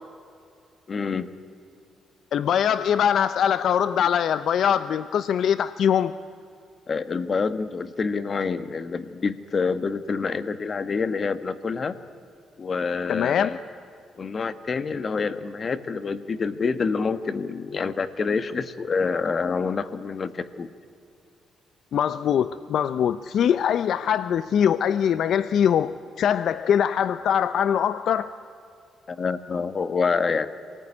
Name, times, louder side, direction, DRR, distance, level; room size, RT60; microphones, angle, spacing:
voice 1, 0.9-1.3 6.9-12.0 12.6-13.6 14.2-20.7 29.1-30.5, left 5 dB, 40° left, 12 dB, 1.4 m, -27 dB
voice 2, 2.3-6.1 13.1-13.5 21.9-28.3, left 8 dB, 70° left, 14 dB, 0.6 m, -22 dB
27.0 x 19.0 x 9.8 m, 2.5 s
cardioid pair, 90°, 0 cm